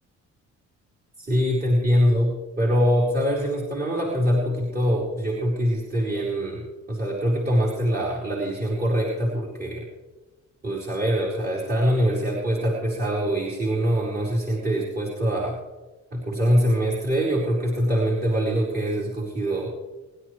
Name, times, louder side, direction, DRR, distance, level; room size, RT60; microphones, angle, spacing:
voice 1, 1.2-9.9 10.6-15.6 16.1-19.7, equal, 30° right, -5 dB, 4.4 m, -24 dB
28.5 x 11.0 x 3.3 m, 1.2 s
cardioid pair, 90°, 30 cm